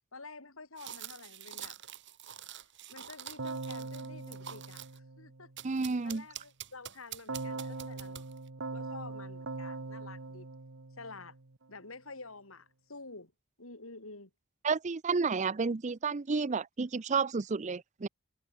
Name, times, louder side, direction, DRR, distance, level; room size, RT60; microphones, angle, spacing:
voice 1, 0.1-1.8 2.9-5.5 6.0-8.2 8.7-10.5 11.0-11.3 11.7-13.3 13.6-14.3, left 3 dB, 80° left, 5.0 m, -49 dB
sound 1, 0.8-5.0 5.6-8.5, right 10 dB, 60° right, 4.2 m, -46 dB
Keyboard (musical), 3.4-5.7 7.3-11.6, right 3 dB, 75° right, 1.4 m, -41 dB
voice 2, 5.6-6.2 14.6-18.1, right 4 dB, 35° right, 0.5 m, -31 dB
head